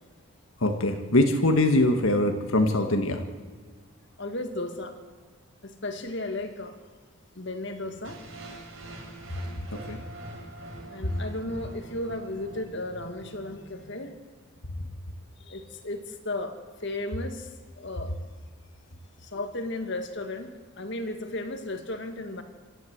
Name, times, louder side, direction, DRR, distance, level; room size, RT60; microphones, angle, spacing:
voice 1, 0.6-3.2 9.7-10.0, left 1 dB, 70° left, 5 dB, 1.6 m, -23 dB
voice 2, 4.2-5.0 5.6-6.8 7.4-8.2 10.9-14.2 15.4-17.5 17.8-18.2 19.2-22.4, left 2 dB, 55° left, 7 dB, 2.1 m, -35 dB
sound 1, 8.0-14.0, right 1 dB, 65° right, 4.6 m, -44 dB
26.0 x 13.5 x 8.0 m, 1.5 s
head